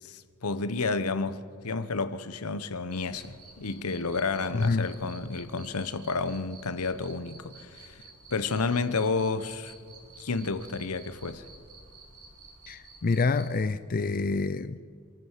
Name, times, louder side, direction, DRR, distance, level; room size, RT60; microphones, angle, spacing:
voice 1, 0.0-8.0 8.3-9.7 10.2-11.4, left 4 dB, 80° left, 1.0 m, -31 dB
Cricket, 2.9-13.5, right 3 dB, 75° right, 5.2 m, -52 dB
voice 2, 4.5-4.9 12.7-14.8, left 3 dB, 40° left, 0.5 m, -27 dB
26.5 x 14.0 x 7.4 m
head